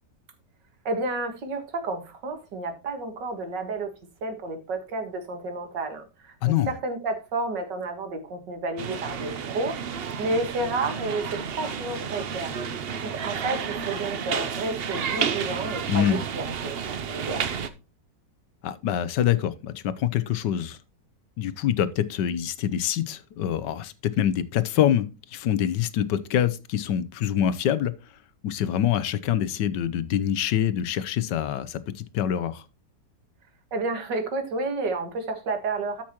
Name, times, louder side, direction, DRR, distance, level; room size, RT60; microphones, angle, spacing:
voice 1, 0.9-3.9 4.2-17.5 33.7-36.0, right 2 dB, 80° right, 2.2 m, -31 dB
voice 2, 6.4-6.7 15.9-16.2 18.6-20.8 21.4-27.9 28.4-32.6, left 10 dB, 80° left, 1.4 m, -25 dB
sound 1, 8.8-17.7, right 7 dB, 55° right, 0.6 m, -31 dB
13.0 x 6.0 x 2.9 m
omnidirectional pair, 1.9 m